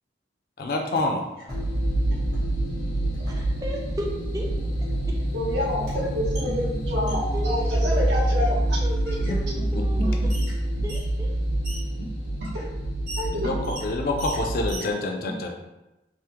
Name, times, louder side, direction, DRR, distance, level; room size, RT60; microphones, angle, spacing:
voice 1, 0.6-1.2 9.7-10.1 12.0-12.1 13.4-13.5 13.8-15.5, left 2 dB, 50° left, 2 dB, 0.4 m, -27 dB
sound 1, 0.7-1.6 1.9-2.5 3.1-3.5 4.6-4.7 4.9-7.5 8.2-8.7 9.0-9.4 9.9-10.0 10.3-14.9, right 1 dB, 60° right, 1.2 m, -42 dB
sound 2, 1.5-14.7, right 1 dB, 85° left, 1.0 m, -26 dB
voice 2, 3.2-4.1 4.3-4.5 7.3-8.1 8.8-10.2 10.8-11.3, equal, 20° right, -1 dB, 0.4 m, -34 dB
voice 3, 5.3-8.8 10.0-10.1 13.2-13.6, left 1 dB, 75° right, -4 dB, 0.8 m, -28 dB
3.4 x 2.0 x 2.9 m, 0.99 s
head